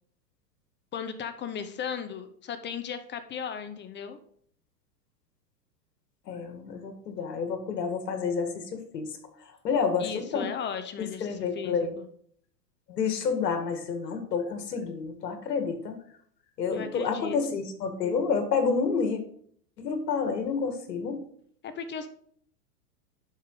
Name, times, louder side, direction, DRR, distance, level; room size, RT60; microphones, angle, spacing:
voice 1, 0.9-4.2 10.0-12.0 16.7-17.6 21.6-22.1, left 7 dB, 20° left, 10 dB, 0.8 m, -36 dB
voice 2, 6.3-9.2 9.6-10.5 11.0-11.9 12.9-16.0 16.6-19.2 19.8-21.2, left 5 dB, 80° left, 6 dB, 2.4 m, -29 dB
11.0 x 5.2 x 5.0 m, 0.62 s
hypercardioid pair, 115°, 48 cm